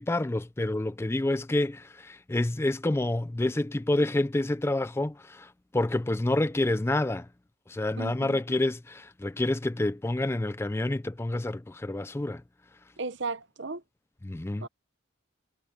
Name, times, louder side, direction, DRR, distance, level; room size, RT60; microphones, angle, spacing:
voice 1, 0.0-5.5 5.7-7.3 7.7-12.4 14.2-14.6, left 1 dB, 10° left, 0.3 m, -28 dB
voice 2, 8.0-8.6 13.0-13.8 14.6-14.7, right 3 dB, 60° right, 0.9 m, -36 dB
head